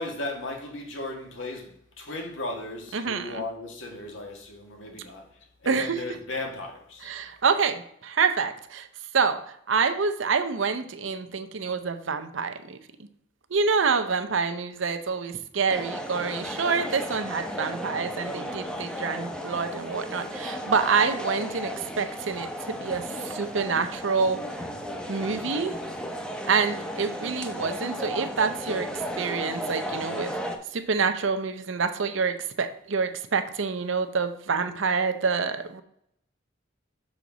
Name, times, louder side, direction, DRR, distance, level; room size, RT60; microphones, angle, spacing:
voice 1, 0.0-5.3 5.6-7.1, left 2 dB, 85° left, 1.6 m, -36 dB
voice 2, 2.9-3.4 5.7-6.0 7.0-8.9 9.1-12.8 13.5-24.6 25.1-25.8 26.5-30.3 30.7-35.8, right 5 dB, 85° right, 0.7 m, -27 dB
sound 1, 15.7-30.6, equal, 5° left, 0.7 m, -34 dB
6.4 x 4.0 x 6.1 m
head